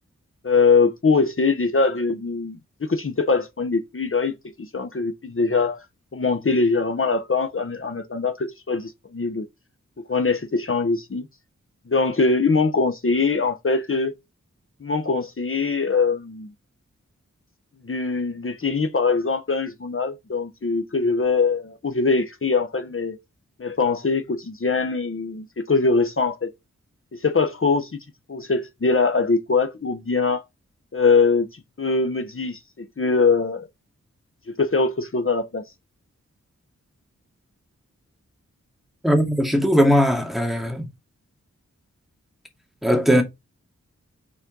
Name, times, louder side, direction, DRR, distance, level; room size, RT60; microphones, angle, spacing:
voice 1, 0.4-5.9 6.1-9.5 10.1-11.3 11.9-14.1 14.8-16.5 17.8-23.2 23.6-26.5 27.1-27.9 28.3-30.4 30.9-33.7 34.5-35.6, left 4 dB, 45° left, 1.1 m, -22 dB
voice 2, 39.0-40.9 42.8-43.2, equal, ahead, 2.2 m, -19 dB
7.2 x 4.3 x 3.9 m
wide cardioid pair, 60°, 30 cm